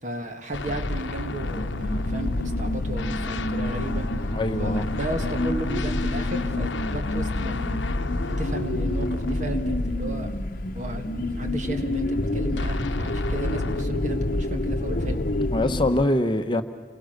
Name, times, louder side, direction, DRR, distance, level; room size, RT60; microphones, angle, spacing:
voice 1, 0.0-4.1 4.6-7.8 8.3-10.5 10.8-11.1 11.3-15.2, right 1 dB, 40° right, 5 dB, 1.9 m, -34 dB
sound 1, 0.5-10.8 12.6-13.8, left 3 dB, 90° left, 0.9 m, -32 dB
sound 2, 0.6-16.0, left 1 dB, 50° left, 1.0 m, -28 dB
voice 2, 4.3-4.9 15.5-16.6, left 1 dB, 25° left, 7 dB, 0.9 m, -23 dB
29.5 x 22.0 x 6.6 m, 1.4 s
head